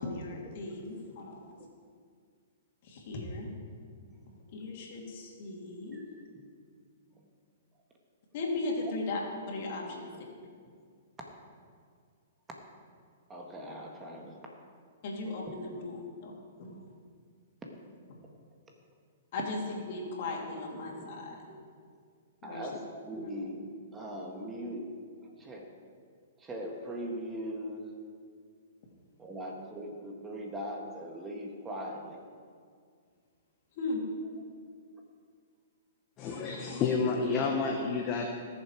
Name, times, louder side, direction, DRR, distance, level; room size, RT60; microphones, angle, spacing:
voice 1, 0.0-1.6 2.8-3.5 4.5-6.0 8.3-9.2 9.5-10.1 15.0-16.3 16.6-16.9 19.3-19.6 19.9-21.3 22.4-22.7 33.8-34.0 36.7-36.8, left 2 dB, 55° left, -1 dB, 2.9 m, -37 dB
voice 2, 13.3-14.5 15.7-15.8 16.7-16.8 20.8-21.2 21.5-21.6 22.4-23.6 23.9-24.9 25.2-25.7 26.4-27.8 29.2-32.2, equal, 15° right, 0 dB, 1.8 m, -40 dB
voice 3, 36.2-38.3, left 4 dB, 30° left, 1 dB, 1.3 m, -30 dB
20.0 x 7.2 x 4.7 m, 2.1 s
hypercardioid pair, 125°, 0 cm